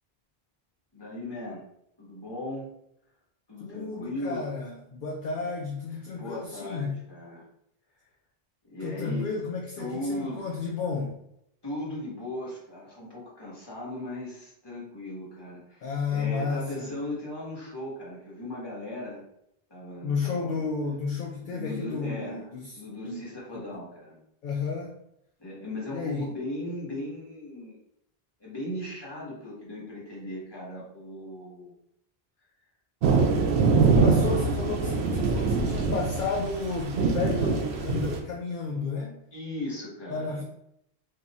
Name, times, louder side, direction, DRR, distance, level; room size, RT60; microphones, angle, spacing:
voice 1, 0.9-1.7 2.0-2.7 3.5-4.5 6.1-7.4 8.7-9.3 9.8-10.5 11.6-19.2 19.7-20.6 21.4-22.5 22.7-24.2 25.4-27.8 28.4-31.7 33.2-34.2 39.3-40.4, left 1 dB, 25° left, -6 dB, 1.2 m, -37 dB
voice 2, 3.6-7.0 8.8-11.2 15.8-16.9 20.0-23.3 23.5-23.6 24.4-24.9 25.9-26.3 33.9-39.2 40.1-40.4, left 4 dB, 60° left, -1 dB, 0.6 m, -32 dB
sound 1, 33.0-38.2, right 4 dB, 80° right, 0.9 m, -24 dB
2.7 x 2.4 x 4.0 m, 0.76 s
omnidirectional pair, 1.1 m